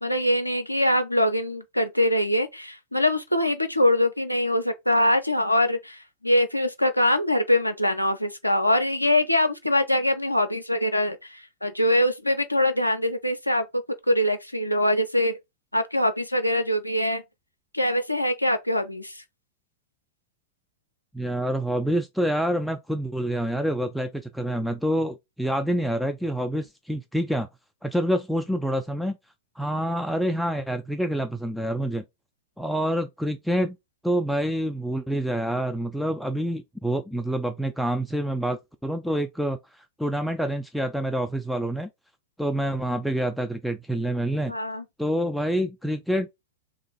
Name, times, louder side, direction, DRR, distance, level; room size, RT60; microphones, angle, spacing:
voice 1, 0.0-15.4 15.7-17.2 17.7-19.2 44.5-44.8, left 1 dB, 90° left, 0.4 m, -23 dB
voice 2, 21.1-27.5 27.8-29.2 29.6-32.0 32.6-33.8 34.0-41.9 42.4-44.5 45.0-46.3, equal, ahead, 0.3 m, -27 dB
3.0 x 2.4 x 3.6 m
figure-of-eight pair, 90°, 0 cm